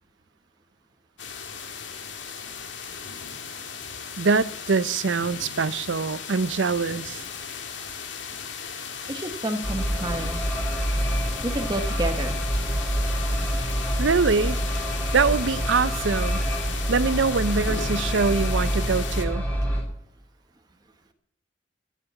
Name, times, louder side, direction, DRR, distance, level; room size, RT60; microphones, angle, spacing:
sound 1, 1.2-19.3, left 6 dB, 90° left, 1.9 m, -36 dB
voice 1, 4.2-7.2 14.0-14.6 15.1-16.4 16.9-19.4, right 4 dB, 90° right, 0.6 m, -24 dB
voice 2, 9.1-10.4 11.4-12.4 13.0-13.8 15.0-15.1, right 1 dB, 25° right, 1.2 m, -31 dB
sound 2, 9.6-19.8, equal, 10° left, 3.6 m, -27 dB
13.5 x 10.0 x 6.8 m
head